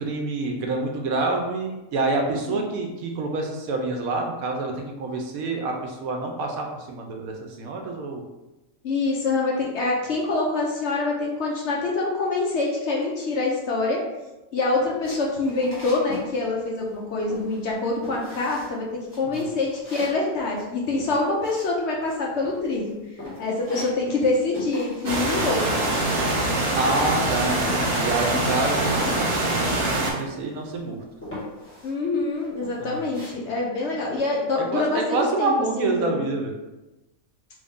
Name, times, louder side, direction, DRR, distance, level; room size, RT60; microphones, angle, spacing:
voice 1, 0.0-8.2 19.2-19.4 26.7-31.0 32.8-33.1 34.7-36.5, right 3 dB, 80° right, 2 dB, 1.0 m, -27 dB
voice 2, 8.8-14.0 14.5-18.8 19.2-23.0 23.4-25.9 31.8-36.2, left 3 dB, 60° left, -2 dB, 0.8 m, -25 dB
sound 1, 15.0-16.3 16.6-17.0 17.3-17.8 18.0-18.7 19.1-22.1 22.4-22.9 23.2-24.3 24.5-25.2 25.4-26.9 27.2-29.5 29.8-29.9 30.2-30.8 31.2-31.9 32.4-33.3, left 2 dB, 10° left, 1.3 m, -40 dB
sound 2, 25.0-30.1, right 2 dB, 50° right, 0.8 m, -24 dB
3.2 x 2.6 x 3.5 m, 1.0 s
omnidirectional pair, 1.5 m